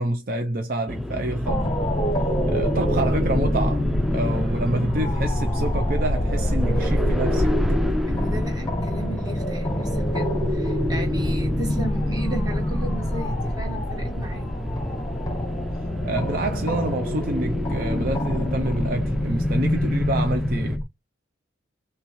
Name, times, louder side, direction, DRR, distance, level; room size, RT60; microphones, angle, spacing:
voice 1, 0.0-1.7 2.5-7.6 16.0-20.8, right 1 dB, 50° right, 0.5 m, -27 dB
sound 1, 0.9-20.8, left 1 dB, ahead, 0.5 m, -33 dB
sound 2, 1.5-20.8, left 1 dB, 20° left, 1.1 m, -25 dB
voice 2, 8.1-14.5, right 1 dB, 20° right, 1.5 m, -36 dB
5.7 x 2.4 x 3.1 m
head